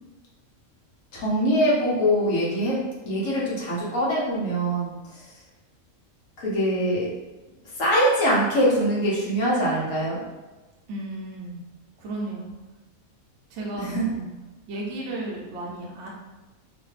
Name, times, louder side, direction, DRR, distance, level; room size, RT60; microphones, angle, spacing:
voice 1, 1.1-2.8 3.0-4.9 6.4-7.1 7.8-10.2 13.8-14.1, equal, 65° left, -5 dB, 1.3 m, -23 dB
voice 2, 10.9-11.6 12.0-12.5 13.5-14.3 14.7-16.1, right 2 dB, 60° right, -3 dB, 0.9 m, -34 dB
3.2 x 2.1 x 3.1 m, 1.2 s
omnidirectional pair, 1.5 m